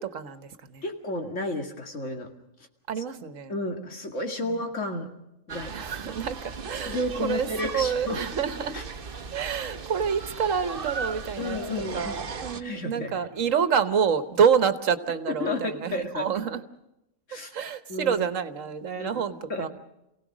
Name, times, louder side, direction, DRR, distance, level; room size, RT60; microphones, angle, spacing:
voice 1, 0.0-0.8 2.9-3.5 5.7-6.4 6.6-8.8 9.3-11.6 11.9-16.6 17.5-19.7, right 7 dB, 75° right, 11 dB, 1.5 m, -27 dB
voice 2, 0.8-2.3 3.0-5.1 5.5-5.7 6.9-8.2 8.7-8.8 11.4-12.1 12.5-13.3 15.3-16.3 17.3-17.5 17.9-18.2 19.0-19.2 19.5-19.7, left 2 dB, 65° left, 3 dB, 2.6 m, -32 dB
sound 1, 5.5-12.6, right 5 dB, 45° right, 1.1 m, -37 dB
28.5 x 17.5 x 6.2 m, 0.90 s
omnidirectional pair, 1.3 m